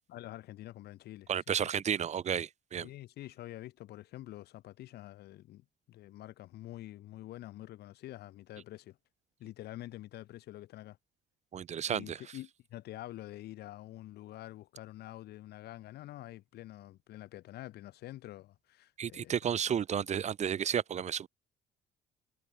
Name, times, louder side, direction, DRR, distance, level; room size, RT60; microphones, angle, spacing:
voice 1, 0.1-2.0 2.8-9.0 9.4-11.0 11.9-19.4 20.7-20.8, left 15 dB, 75° left, 2.3 m, -47 dB
voice 2, 1.3-2.9 11.5-12.2 19.0-21.3, right 8 dB, 45° right, 1.1 m, -32 dB
cardioid pair, 110°, 17 cm